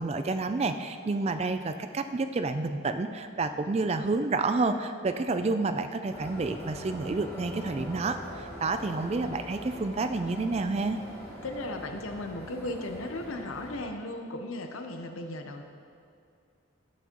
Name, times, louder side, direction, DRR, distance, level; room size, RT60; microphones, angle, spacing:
voice 1, 0.0-11.0, right 3 dB, 30° right, 9 dB, 0.3 m, -29 dB
sound 1, 6.1-13.8, equal, 15° left, 1.9 m, -43 dB
voice 2, 11.4-15.7, left 2 dB, 90° left, 5 dB, 0.8 m, -36 dB
11.5 x 8.2 x 3.0 m, 2.4 s
head